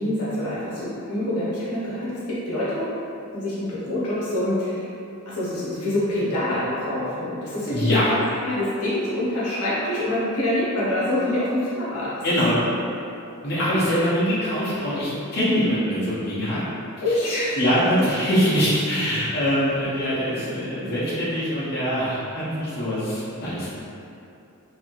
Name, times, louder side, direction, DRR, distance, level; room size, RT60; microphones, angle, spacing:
voice 1, 0.0-2.9 3.3-4.9 5.3-8.0 8.5-12.2 12.5-12.6 17.0-17.6, left 1 dB, 80° left, -9 dB, 0.9 m, -26 dB
voice 2, 7.7-8.0 12.2-12.6 13.4-16.6 17.1-17.2 17.6-23.8, equal, 45° left, -11 dB, 0.7 m, -23 dB
3.0 x 2.7 x 2.4 m, 2.7 s
head